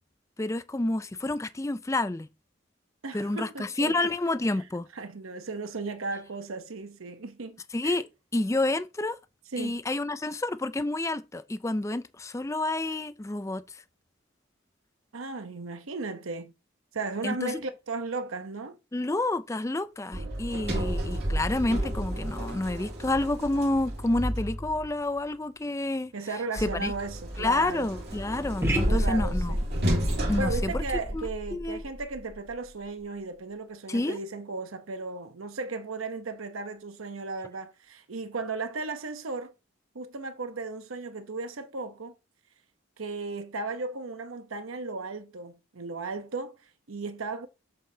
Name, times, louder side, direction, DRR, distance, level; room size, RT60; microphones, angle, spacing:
voice 1, 0.4-2.3 3.1-4.9 7.7-8.1 8.3-9.2 9.6-13.8 17.2-17.6 18.9-26.1 26.6-26.9 27.4-29.6 30.3-31.8 33.9-34.2, left 2 dB, 15° left, 0.4 m, -29 dB
voice 2, 3.0-3.9 4.9-8.0 9.5-9.8 15.1-16.5 16.9-18.8 26.1-27.9 28.6-29.6 30.2-39.5 39.9-42.2 43.0-47.5, right 3 dB, 85° right, 0.9 m, -35 dB
Sliding door, 20.1-25.0 26.6-31.5, right 1 dB, 50° right, 2.6 m, -32 dB
sound 1, 28.6-32.7, equal, 10° right, 1.1 m, -30 dB
7.4 x 7.2 x 2.8 m
head